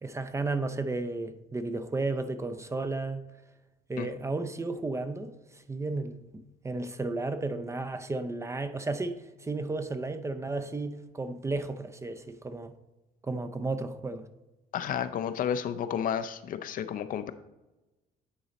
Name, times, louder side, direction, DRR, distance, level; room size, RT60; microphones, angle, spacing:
voice 1, 0.0-3.2 3.9-5.3 5.7-12.7 13.2-14.3, right 3 dB, 15° right, 0.5 m, -33 dB
voice 2, 14.7-17.3, left 8 dB, 55° left, 0.5 m, -31 dB
9.7 x 3.9 x 4.0 m
cardioid pair, 110°, 17 cm